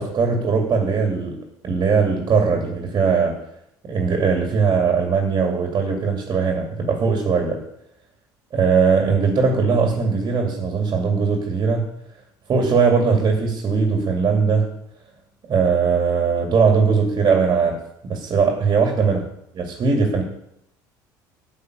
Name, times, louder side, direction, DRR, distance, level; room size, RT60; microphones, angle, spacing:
voice 1, 0.0-1.4 1.6-3.4 3.9-7.6 8.5-11.9 12.5-14.7 15.5-17.8 18.0-19.3 19.5-20.2, right 5 dB, 45° right, 2 dB, 2.8 m, -20 dB
12.0 x 5.5 x 8.5 m, 0.75 s
hypercardioid pair, 70°, 10 cm